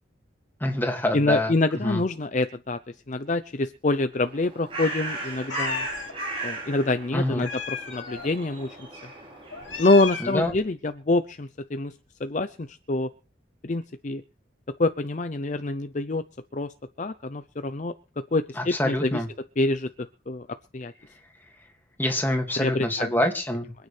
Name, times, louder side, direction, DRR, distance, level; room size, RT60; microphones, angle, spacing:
voice 1, 0.6-1.5 1.8-2.0 7.1-7.4 10.2-10.5 18.6-19.3 22.0-23.7, left 1 dB, 10° left, 3 dB, 2.1 m, -26 dB
voice 2, 1.1-2.8 3.1-5.9 6.4-8.8 9.8-11.9 12.2-13.1 13.6-14.2 14.8-16.2 16.5-16.7 17.0-17.9 18.3-19.2 19.6-19.9 20.3-20.5 20.7-20.9 22.6-23.2, left 2 dB, 40° left, 10 dB, 0.6 m, -26 dB
Bird, 4.2-10.2, right 2 dB, 30° right, 6.6 m, -36 dB
Meow, 5.5-6.1 7.4-8.3 9.5-10.6, left 5 dB, 85° left, 2.8 m, -34 dB
26.0 x 9.3 x 3.4 m, 0.35 s
head